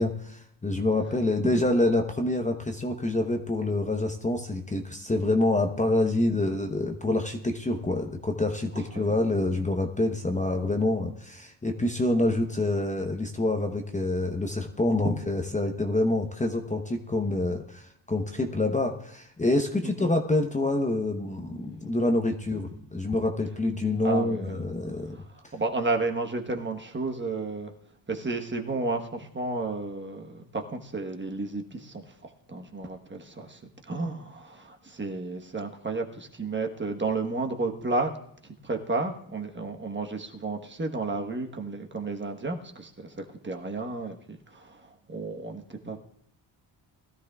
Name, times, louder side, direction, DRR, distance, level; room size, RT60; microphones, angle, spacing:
voice 1, 0.0-25.2, left 2 dB, 15° left, 3 dB, 0.9 m, -27 dB
voice 2, 24.0-24.6 25.1-25.2 25.5-27.7 28.1-33.6 33.9-38.1 38.4-46.0, right 3 dB, 25° right, 3 dB, 1.2 m, -32 dB
20.5 x 13.0 x 2.3 m, 0.67 s
cardioid pair, 105°, 45 cm